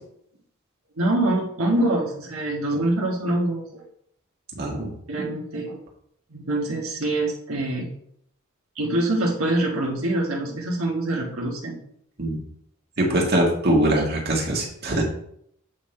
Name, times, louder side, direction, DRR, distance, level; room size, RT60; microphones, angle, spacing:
voice 1, 1.0-3.8 5.1-5.8 6.3-7.9 8.7-11.8 13.1-13.3, right 1 dB, 85° right, -2 dB, 1.4 m, -25 dB
voice 2, 4.6-4.9 12.2-12.4 13.0-15.0, right 1 dB, 50° right, -1 dB, 1.8 m, -22 dB
8.2 x 3.8 x 4.3 m, 0.70 s
head